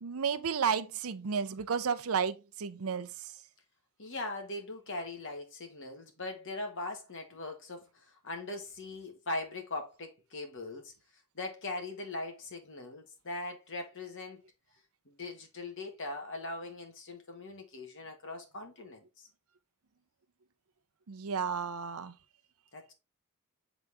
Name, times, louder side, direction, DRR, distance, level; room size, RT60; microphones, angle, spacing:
voice 1, 0.0-3.3 21.1-22.1, right 6 dB, 70° right, 0.6 m, -32 dB
voice 2, 4.0-10.9 11.3-14.4 15.0-19.3 22.7-22.9, left 2 dB, 60° left, 1.6 m, -40 dB
7.0 x 4.0 x 3.5 m
head